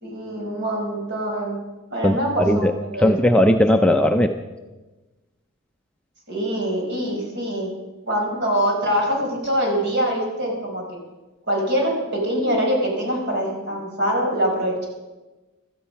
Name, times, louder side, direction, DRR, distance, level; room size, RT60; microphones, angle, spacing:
voice 1, 0.0-1.6 1.9-3.2 6.3-7.7 8.1-10.8 11.5-14.9, equal, 50° right, 0 dB, 4.8 m, -24 dB
voice 2, 2.0-2.7 3.0-4.3, left 1 dB, 5° left, 4 dB, 0.4 m, -17 dB
16.5 x 13.0 x 5.7 m, 1.2 s
head